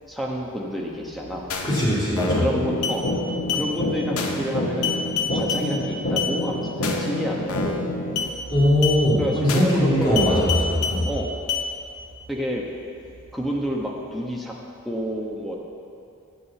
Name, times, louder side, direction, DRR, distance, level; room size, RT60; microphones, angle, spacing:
voice 1, 0.1-1.4 2.4-3.0 3.5-5.0 5.3-7.8 9.2-10.6 11.0-11.4 12.3-12.6 13.3-14.5 14.8-15.6, equal, ahead, -3 dB, 1.1 m, -29 dB
sound 1, 1.5-1.8 2.2-2.5 2.8-3.0 3.5-3.7 4.2-4.5 4.8-5.7 6.2-6.3 6.8-7.1 7.5-7.8 8.1-8.3 8.8-9.0 9.5-9.8 10.1-11.0 11.5-11.6, left 7 dB, 75° left, 0.9 m, -27 dB
voice 2, 1.6-2.4 8.5-11.1, left 1 dB, 20° left, -8 dB, 2.4 m, -20 dB
sound 2, 2.3-8.3, left 1 dB, 50° left, 0.9 m, -28 dB
8.4 x 7.1 x 6.9 m, 2.6 s
head